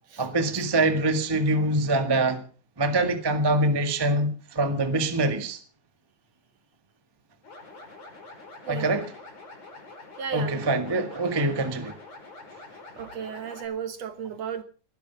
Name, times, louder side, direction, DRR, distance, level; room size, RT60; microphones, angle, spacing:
voice 1, 0.2-2.4 2.8-5.6 8.7-9.1 10.3-11.9, right 2 dB, 15° right, 0.7 m, -24 dB
sound 1, 7.4-13.7, left 3 dB, 60° left, 7.3 m, -46 dB
voice 2, 8.7-9.0 10.2-10.6 13.0-14.6, right 7 dB, 60° right, 1.9 m, -34 dB
20.0 x 12.0 x 5.8 m
omnidirectional pair, 3.9 m